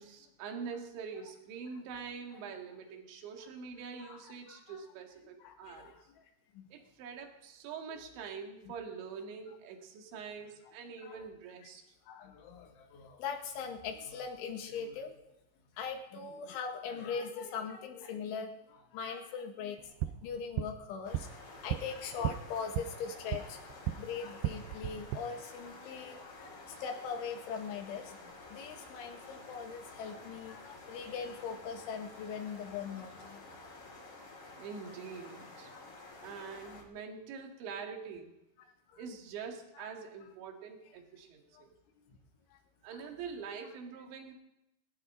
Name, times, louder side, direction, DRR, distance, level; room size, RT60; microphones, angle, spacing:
voice 1, 0.0-6.0 6.7-11.8 34.6-35.7 36.2-38.3 39.0-41.7 42.8-44.3, right 6 dB, 65° right, 2 dB, 4.0 m, -45 dB
voice 2, 4.0-4.8 5.4-6.2 6.5-6.7 7.9-8.0 8.7-8.8 9.5-9.6 11.0-11.2 12.0-15.2 15.8-23.7 24.0-33.8 34.1-34.2 35.7-36.0 36.8-36.9 38.6-39.0 39.8-39.9 41.5-41.7 42.0-42.2 42.5-42.6 42.9-43.1, left 6 dB, 70° left, 3 dB, 4.0 m, -41 dB
sound 1, 19.8-24.0 24.3-25.2, right 13 dB, 85° right, 2.5 m, -37 dB
sound 2, 21.0-36.8, left 2 dB, 40° left, 4.0 m, -51 dB
20.5 x 18.5 x 3.8 m, 0.90 s
omnidirectional pair, 5.9 m